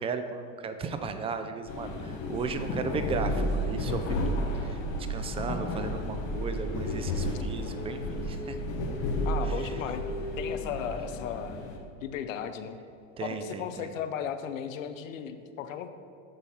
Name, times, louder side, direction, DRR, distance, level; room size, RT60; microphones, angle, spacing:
voice 1, 0.0-4.2 4.6-4.8 5.1-8.6 9.4-9.8 10.8-10.9 13.2-13.9, right 5 dB, 15° right, 8 dB, 0.4 m, -35 dB
sound 1, 1.7-11.8, left 1 dB, 50° left, 1.2 m, -32 dB
voice 2, 9.2-11.6 12.0-12.8 13.2-15.9, left 8 dB, 80° left, 9 dB, 0.7 m, -36 dB
7.8 x 4.1 x 5.6 m, 2.5 s
hypercardioid pair, 110°, 38 cm